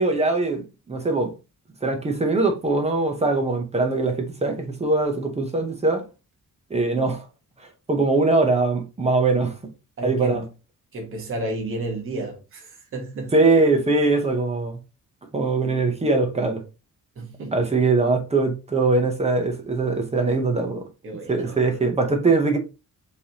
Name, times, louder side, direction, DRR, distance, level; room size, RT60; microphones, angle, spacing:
voice 1, 0.0-1.3 1.8-6.0 6.7-7.2 7.9-9.5 10.0-10.4 13.3-14.8 15.3-16.6 17.5-20.8 21.3-22.6, right 3 dB, 20° right, 0.8 m, -21 dB
voice 2, 10.0-10.4 10.9-13.4 17.2-17.5 21.0-21.6, right 2 dB, 40° right, 1.2 m, -32 dB
5.1 x 3.4 x 2.9 m
wide cardioid pair, 180°, 33 cm